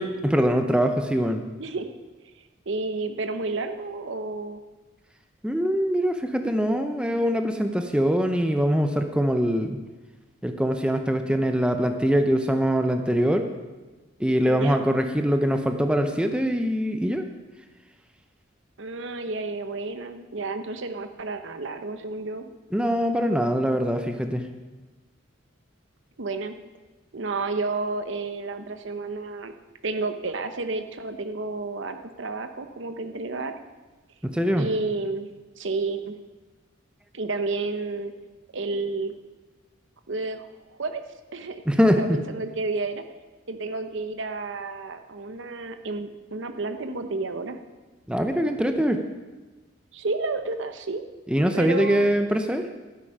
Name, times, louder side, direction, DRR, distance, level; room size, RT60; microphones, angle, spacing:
voice 1, 0.0-1.4 5.4-9.8 10.4-13.5 14.2-17.2 22.7-24.4 34.2-34.7 41.7-42.2 48.1-49.0 51.3-52.7, equal, 5° right, 6 dB, 0.6 m, -23 dB
voice 2, 1.6-1.9 2.7-4.6 14.4-14.8 18.8-22.5 26.2-26.5 27.1-29.5 29.8-33.5 34.6-35.3 35.6-36.2 37.1-38.1 38.5-39.1 40.1-41.0 41.3-41.6 42.0-43.0 43.5-47.6 49.9-51.0 51.5-52.1, right 3 dB, 65° right, 8 dB, 0.8 m, -31 dB
12.0 x 9.6 x 5.5 m, 1.2 s
head